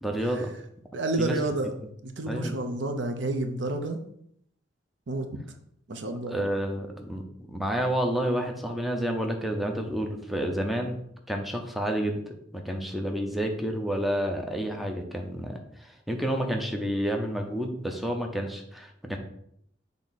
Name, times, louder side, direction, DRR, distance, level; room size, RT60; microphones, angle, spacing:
voice 1, 0.0-0.5 1.2-1.4 2.3-2.5 6.3-11.0 11.3-19.2, equal, ahead, 2 dB, 0.7 m, -30 dB
voice 2, 0.9-1.7 2.0-4.0 5.1-5.3 5.9-6.4, right 2 dB, 75° right, 6 dB, 0.7 m, -30 dB
6.5 x 3.5 x 4.1 m, 0.71 s
head